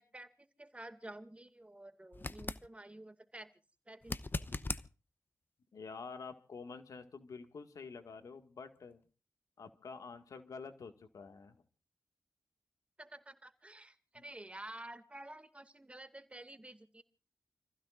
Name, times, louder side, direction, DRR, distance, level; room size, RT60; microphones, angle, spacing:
voice 1, 0.0-3.5 3.9-4.4 13.0-17.0, right 1 dB, 20° right, 9 dB, 2.2 m, -51 dB
sound 1, 2.1-2.7 4.0-4.9 7.9-8.0, left 3 dB, 35° left, 0.9 m, -39 dB
voice 2, 5.7-9.0 9.6-11.6 14.2-14.3, left 5 dB, 85° left, 7 dB, 2.0 m, -48 dB
30.0 x 15.5 x 2.6 m, 0.35 s
cardioid pair, 55°, 6 cm